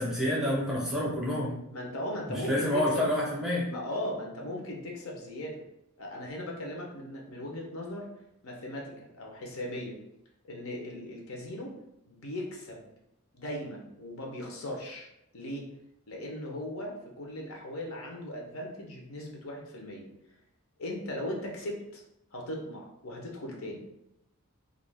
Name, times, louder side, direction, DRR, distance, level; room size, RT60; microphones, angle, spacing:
voice 1, 0.0-1.6 2.3-3.7, left 1 dB, ahead, -5 dB, 0.6 m, -28 dB
voice 2, 1.7-3.1 3.7-5.6 6.0-8.1 8.4-10.0 10.5-11.7 12.1-12.8 13.3-15.1 15.3-15.6 16.1-20.1 20.8-22.0 22.3-23.8, left 1 dB, 80° left, -1 dB, 0.7 m, -38 dB
2.4 x 2.2 x 3.3 m, 0.82 s
head